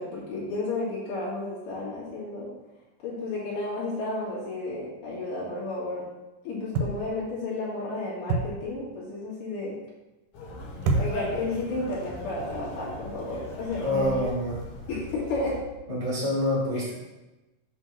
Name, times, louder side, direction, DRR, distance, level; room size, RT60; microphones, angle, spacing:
voice 1, 0.0-2.5 3.0-6.0 6.5-9.8 11.0-14.2 14.9-15.6 16.7-16.8, left 2 dB, 65° left, -8 dB, 3.5 m, -32 dB
sound 1, 6.7-7.3 8.3-8.7 10.8-11.5 12.3-12.4, right 3 dB, 80° right, 1.9 m, -27 dB
Conversation, 10.3-15.6, left 2 dB, 85° left, 3.2 m, -39 dB
voice 2, 13.8-14.6 15.9-16.9, left 1 dB, 40° left, -6 dB, 0.5 m, -26 dB
7.9 x 2.7 x 6.0 m, 1.0 s
omnidirectional pair, 3.9 m